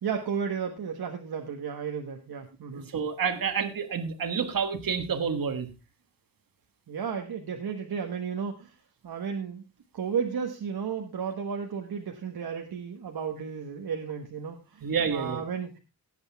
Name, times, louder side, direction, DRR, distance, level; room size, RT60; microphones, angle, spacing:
voice 1, 0.0-2.9 6.9-8.8 9.0-9.6 9.9-15.8, right 6 dB, 85° right, 3 dB, 1.4 m, -33 dB
voice 2, 2.7-5.7 14.8-15.4, right 6 dB, 65° right, 8 dB, 1.5 m, -29 dB
17.0 x 8.1 x 3.5 m, 0.28 s
wide cardioid pair, 150°, 36 cm